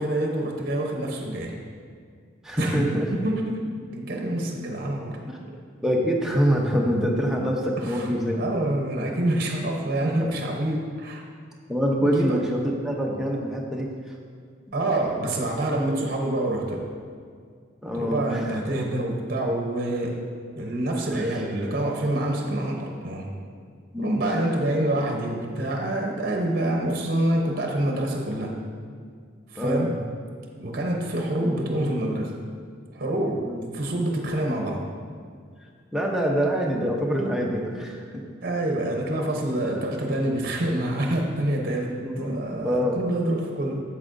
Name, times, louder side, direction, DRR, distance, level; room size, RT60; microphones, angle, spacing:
voice 1, 0.0-1.6 2.6-2.8 3.1-3.6 3.9-5.2 7.8-11.3 12.0-12.4 14.7-16.9 17.9-20.2 20.6-23.3 24.0-28.5 29.5-29.9 30.6-32.3 32.9-33.4 33.7-34.8 38.4-43.8, right 1 dB, 50° right, 1 dB, 0.8 m, -26 dB
voice 2, 2.4-3.1 5.3-5.4 5.8-8.5 10.2-10.3 11.7-13.9 17.8-18.6 21.1-21.3 23.9-24.7 29.6-30.0 31.4-31.7 33.5-33.7 35.9-38.2 42.0-43.0, equal, ahead, -2 dB, 0.7 m, -25 dB
8.2 x 7.0 x 2.6 m, 2.1 s
head